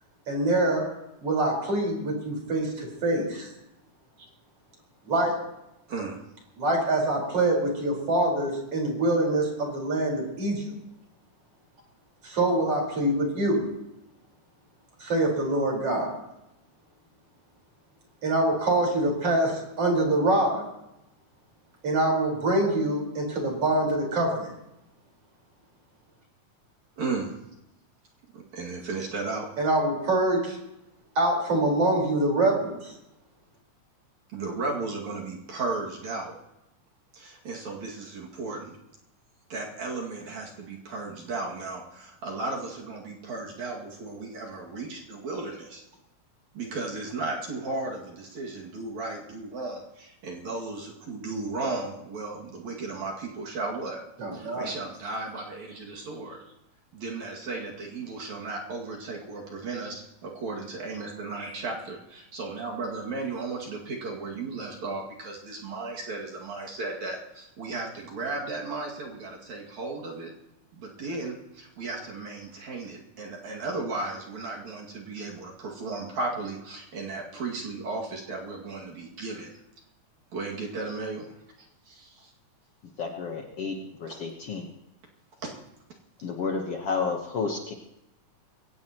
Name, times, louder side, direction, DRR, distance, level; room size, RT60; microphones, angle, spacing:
voice 1, 0.3-0.9 1.2-3.5 5.1-5.3 6.6-10.7 12.2-13.6 15.0-16.1 18.2-20.7 21.8-24.5 29.6-30.6 31.2-32.9 54.2-54.7 61.4-61.5, right 1 dB, 45° right, 0 dB, 5.6 m, -25 dB
voice 2, 5.9-6.2 27.0-27.4 28.3-29.5 34.3-36.3 37.1-38.7 39.5-45.8 46.5-54.0 54.3-56.4 56.9-70.3 70.7-79.6 80.3-81.3 81.6-82.3 85.4-85.5, right 3 dB, 60° right, -2 dB, 3.5 m, -35 dB
voice 3, 83.0-84.7 86.2-87.7, left 5 dB, 55° left, 2 dB, 1.9 m, -31 dB
22.5 x 17.5 x 3.0 m, 0.88 s
omnidirectional pair, 3.7 m